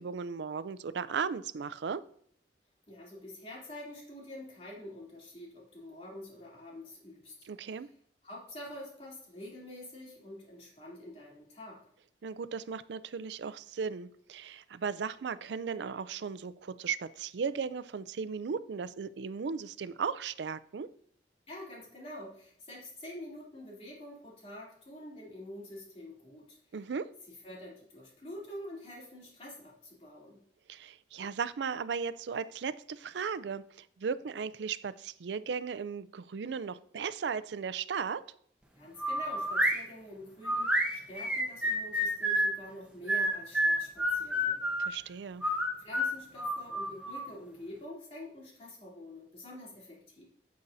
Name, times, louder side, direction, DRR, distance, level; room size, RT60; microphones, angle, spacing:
voice 1, 0.0-2.0 7.4-7.9 12.2-20.9 26.7-27.1 30.7-38.2 44.8-45.4, right 6 dB, 75° right, 13 dB, 0.4 m, -36 dB
voice 2, 2.9-7.3 7.7-7.9 8.2-11.8 21.5-26.8 27.4-30.4 38.8-44.7 45.8-50.2, left 1 dB, 35° left, -4 dB, 3.0 m, -47 dB
sound 1, 39.0-39.8 40.4-42.5 43.1-44.9 45.4-47.3, equal, 5° right, 1.0 m, -29 dB
9.5 x 8.5 x 2.7 m, 0.63 s
head